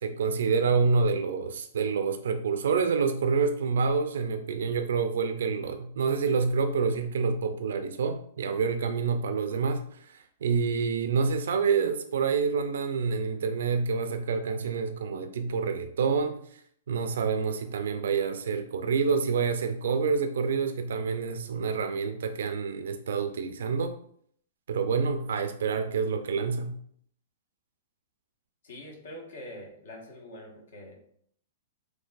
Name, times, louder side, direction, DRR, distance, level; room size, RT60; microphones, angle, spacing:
voice 1, 0.0-16.6 16.9-24.0 24.7-26.8, right 5 dB, 80° right, 8 dB, 0.4 m, -27 dB
voice 2, 28.6-31.0, left 1 dB, 80° left, 0 dB, 1.4 m, -44 dB
5.3 x 3.1 x 2.4 m, 0.63 s
hypercardioid pair, 160°, 0 cm